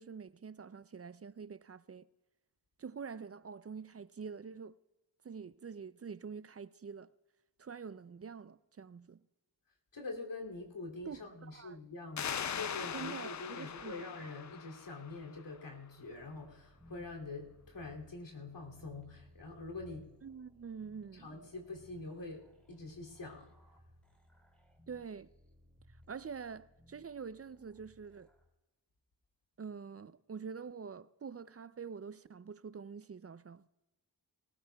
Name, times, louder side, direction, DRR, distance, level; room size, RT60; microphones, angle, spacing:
voice 1, 0.0-2.1 2.8-4.7 5.2-7.1 7.6-9.2 11.0-11.8 12.9-14.1 20.2-21.4 24.9-25.3 26.1-28.3 29.6-33.7, right 6 dB, 35° right, 0.4 m, -46 dB
voice 2, 9.9-20.2 21.1-23.5, left 3 dB, 75° left, 2.8 m, -45 dB
sound 1, 12.2-15.5, left 8 dB, 45° left, 0.4 m, -41 dB
sound 2, 16.0-28.5, equal, 5° left, 2.6 m, -62 dB
19.5 x 18.5 x 2.3 m
wide cardioid pair, 70°, 43 cm